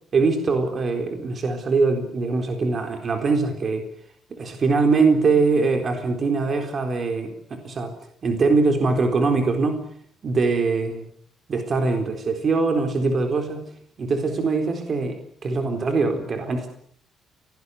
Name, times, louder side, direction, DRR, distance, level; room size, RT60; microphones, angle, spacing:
voice 1, 0.1-3.9 4.3-7.9 8.2-9.9 10.2-11.1 11.5-13.7 14.0-16.7, right 4 dB, 35° right, 5 dB, 4.1 m, -22 dB
25.0 x 19.0 x 9.7 m, 0.65 s
cardioid pair, 155°, 0 cm